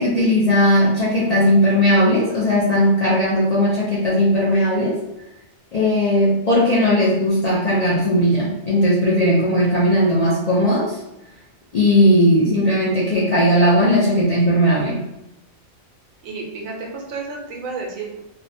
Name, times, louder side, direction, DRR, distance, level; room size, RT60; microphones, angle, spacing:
voice 1, 0.0-5.0 5.7-11.0 11.7-15.0, equal, 60° left, -7 dB, 0.4 m, -17 dB
voice 2, 16.2-18.2, right 4 dB, 85° right, 0 dB, 1.1 m, -31 dB
2.7 x 2.1 x 2.6 m, 0.92 s
omnidirectional pair, 1.4 m